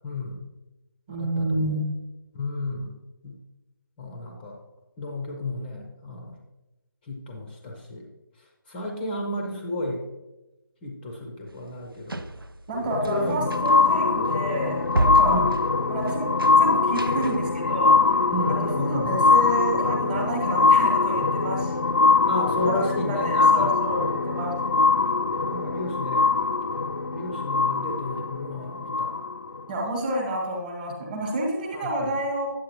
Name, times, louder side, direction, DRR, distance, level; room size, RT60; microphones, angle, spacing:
voice 1, 0.0-0.5 1.2-1.8 2.3-3.0 3.2-3.4 4.0-4.6 5.0-6.4 7.0-8.1 8.7-10.0 10.8-12.3 13.1-13.5 15.2-15.5 18.3-19.3 22.3-23.7 25.4-26.3 27.1-29.1 31.7-31.9, left 1 dB, 10° left, 1 dB, 0.5 m, -32 dB
voice 2, 1.1-2.0 12.7-15.4 15.9-21.7 22.6-24.6 29.7-32.5, right 1 dB, 25° right, 0 dB, 1.1 m, -29 dB
sound 1, 11.5-17.5, right 1 dB, 85° right, 0.6 m, -31 dB
sound 2, 12.7-29.6 30.3-30.4, left 4 dB, 55° left, 0.4 m, -22 dB
9.3 x 7.4 x 2.9 m, 1.0 s
figure-of-eight pair, 155°, 12 cm